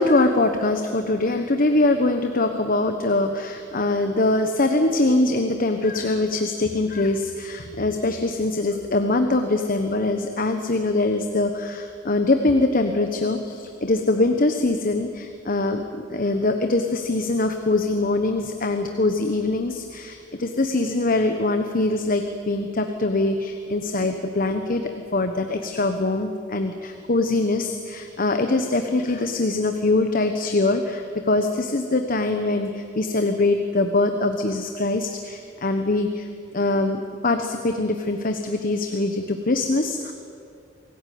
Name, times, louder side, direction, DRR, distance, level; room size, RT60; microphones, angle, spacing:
voice 1, 0.0-24.8 25.1-36.3 36.5-40.1, left 2 dB, 50° left, 6 dB, 1.2 m, -23 dB
26.0 x 16.5 x 9.4 m, 2.5 s
head